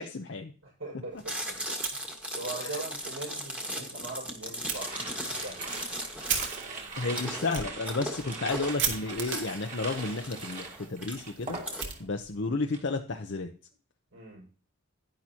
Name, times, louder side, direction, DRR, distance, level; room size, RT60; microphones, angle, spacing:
voice 1, 0.0-0.5 2.6-2.8 7.0-11.6 12.0-13.5, left 3 dB, 55° left, 4 dB, 0.7 m, -32 dB
voice 2, 0.6-1.6 2.3-5.7 14.1-14.5, right 2 dB, 75° right, -3 dB, 5.8 m, -41 dB
Chewing mastication, 1.2-11.8, equal, 5° right, 1.6 m, -37 dB
Fire, 1.7-2.6 2.9-3.0 3.4-3.5 4.7-4.8 5.4-12.5, right 7 dB, 55° right, 2.2 m, -38 dB
sound 1, 4.7-12.1 12.4-12.9, right 3 dB, 35° right, 2.2 m, -41 dB
10.5 x 10.5 x 2.9 m, 0.38 s
head